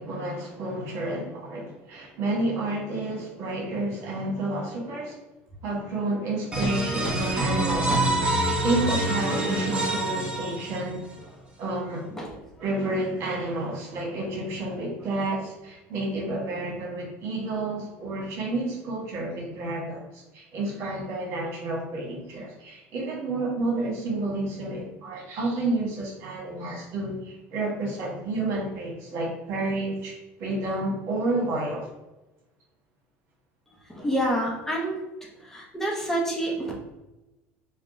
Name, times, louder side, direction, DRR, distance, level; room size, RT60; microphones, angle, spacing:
voice 1, 0.0-5.2 5.6-8.1 8.6-11.0 11.6-12.0 12.6-31.9, right 2 dB, 60° right, -2 dB, 1.5 m, -30 dB
sound 1, 6.5-11.1, right 1 dB, 20° right, 0.9 m, -26 dB
voice 2, 33.9-35.0 35.4-36.7, right 1 dB, 5° left, -2 dB, 0.8 m, -28 dB
3.5 x 2.2 x 3.7 m, 1.0 s
supercardioid pair, 120°, 6 cm